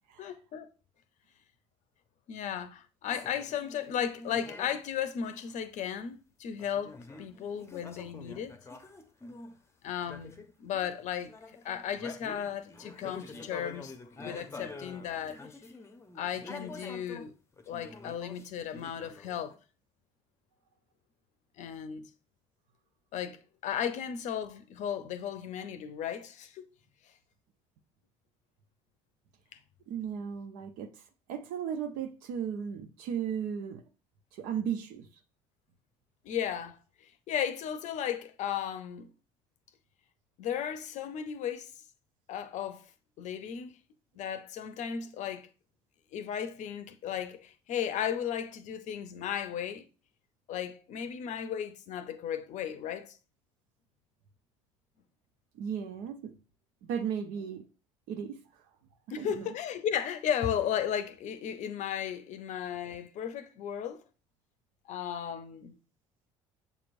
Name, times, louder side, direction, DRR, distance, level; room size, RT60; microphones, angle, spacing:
voice 1, 0.2-0.7 2.3-8.5 9.8-11.3 11.6-15.4 16.1-17.4 17.7-19.5 21.6-22.1 23.1-23.4 23.6-26.7 36.2-36.8 37.3-39.1 40.4-41.7 42.3-42.8 43.2-43.8 44.2-45.5 46.1-49.9 50.5-53.2 59.1-64.0 64.9-65.8, left 9 dB, 55° left, 0.6 m, -35 dB
sound 1, 3.1-4.8 5.2-5.6 6.6-9.6 10.0-11.0 11.3-17.3 17.5-19.6, left 3 dB, 20° left, 0.7 m, -47 dB
voice 2, 29.9-30.9 31.3-33.8 34.3-35.1 55.6-56.3 56.9-57.6 58.1-58.4 59.2-59.5, right 8 dB, 65° right, 0.7 m, -35 dB
6.8 x 3.0 x 2.6 m
hypercardioid pair, 60°, 15 cm